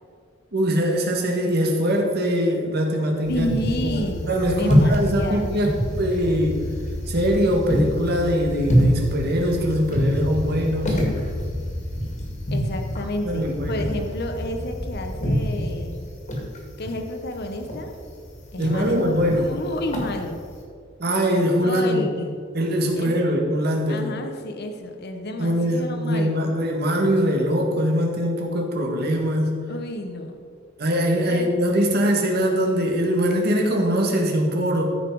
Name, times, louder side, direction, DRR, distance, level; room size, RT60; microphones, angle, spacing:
voice 1, 0.5-3.5 3.8-6.6 7.1-11.0 13.2-13.8 18.6-19.6 21.0-22.0 22.5-24.1 25.4-29.6 30.8-35.0, equal, 55° right, 2 dB, 1.6 m, -22 dB
sound 1, 3.2-20.6, equal, 40° left, 2.2 m, -26 dB
voice 2, 3.3-5.5 12.5-16.1 16.8-17.9 18.5-20.4 21.6-22.3 23.0-23.2 23.9-26.4 29.7-30.4 31.3-31.5, left 1 dB, 55° left, 5 dB, 1.0 m, -31 dB
14.0 x 5.8 x 4.7 m, 2.2 s
head